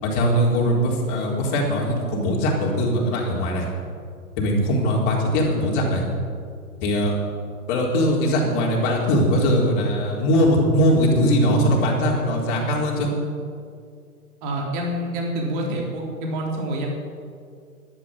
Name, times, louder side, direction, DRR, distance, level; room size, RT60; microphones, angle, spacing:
voice 1, 0.0-3.7 4.4-6.0 6.8-7.1 7.7-13.1, equal, 35° left, -2 dB, 4.2 m, -21 dB
voice 2, 14.4-16.9, right 1 dB, 35° right, -1 dB, 3.6 m, -27 dB
12.0 x 11.0 x 9.3 m, 2.2 s
figure-of-eight pair, 130°, 45 cm